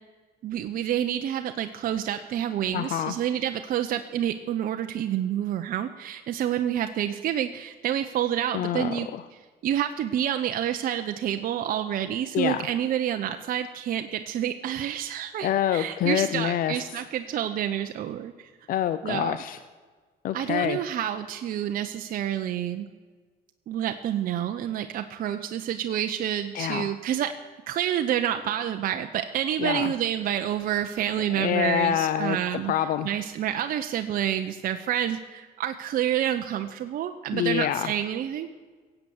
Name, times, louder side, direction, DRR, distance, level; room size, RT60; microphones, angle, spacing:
voice 1, 0.4-9.1 9.6-18.5 19.0-19.4 20.3-22.9 23.7-27.4 27.7-32.7 33.0-38.5, right 10 dB, 55° right, 7 dB, 0.7 m, -28 dB
voice 2, 2.7-3.1 8.5-9.2 12.3-12.7 15.4-16.8 18.7-19.6 20.2-20.8 26.5-26.9 29.6-29.9 31.4-32.4 32.7-33.1 37.3-37.9, left 10 dB, 55° left, 13 dB, 0.6 m, -26 dB
17.0 x 8.0 x 7.1 m, 1.5 s
cardioid pair, 110°, 17 cm